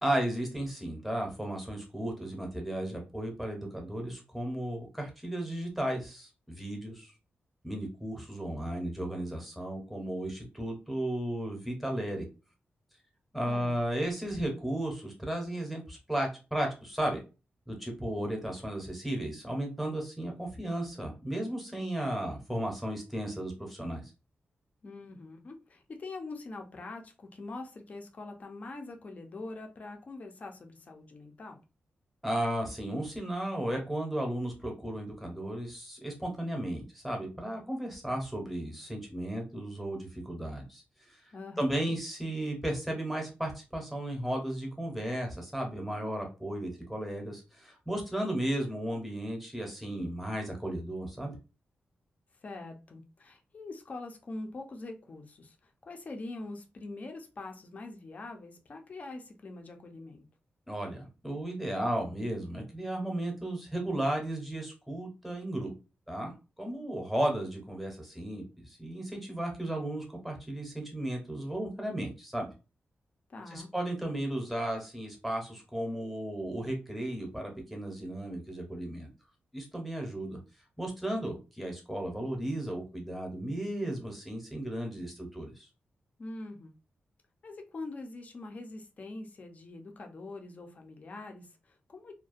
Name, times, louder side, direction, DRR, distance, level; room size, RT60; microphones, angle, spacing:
voice 1, 0.0-7.1 7.6-12.3 13.3-17.2 17.7-24.0 32.2-40.8 41.1-41.2 41.6-51.4 60.7-65.7 66.1-66.3 66.6-72.5 73.5-79.1 79.5-80.4 80.8-85.7, right 1 dB, ahead, 1 dB, 0.7 m, -34 dB
voice 2, 24.8-31.6 41.3-42.0 52.4-60.2 73.3-73.7 86.2-86.7 87.4-92.1, left 2 dB, 40° left, 4 dB, 0.5 m, -44 dB
2.4 x 2.1 x 2.4 m, 0.30 s
wide cardioid pair, 150°, 4 cm